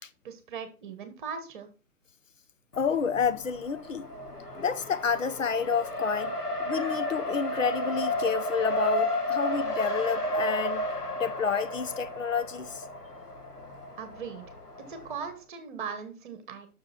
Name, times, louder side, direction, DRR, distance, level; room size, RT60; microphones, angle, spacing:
voice 1, 0.2-1.7 14.0-14.4 14.8-16.7, right 6 dB, 35° right, 1.5 m, -39 dB
Race car auto racing, 2.7-15.4, left 1 dB, 85° left, 1.7 m, -33 dB
voice 2, 2.8-4.1 4.5-6.3 6.6-10.8 11.2-12.8, left 6 dB, 60° left, 0.7 m, -29 dB
6.7 x 6.4 x 4.3 m
figure-of-eight pair, 135°, 45 cm